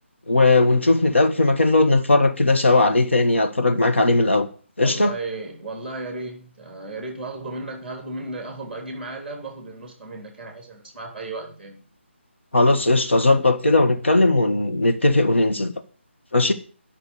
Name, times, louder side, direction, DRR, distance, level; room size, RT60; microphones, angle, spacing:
voice 1, 0.3-4.5 4.8-5.1 12.5-15.7 16.3-16.5, left 2 dB, 65° left, 1.4 m, -18 dB
voice 2, 4.8-11.8, right 2 dB, ahead, 2.2 m, -34 dB
10.5 x 6.2 x 7.9 m
figure-of-eight pair, 150°, 7 cm